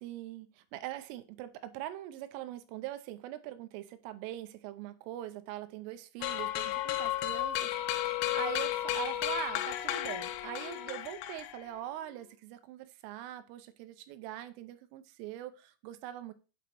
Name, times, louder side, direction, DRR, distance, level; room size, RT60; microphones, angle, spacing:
voice 1, 0.0-16.3, right 13 dB, 90° right, 3.3 m, -42 dB
sound 1, 6.2-11.8, left 14 dB, 85° left, 3.0 m, -33 dB
8.0 x 4.4 x 5.1 m
omnidirectional pair, 5.6 m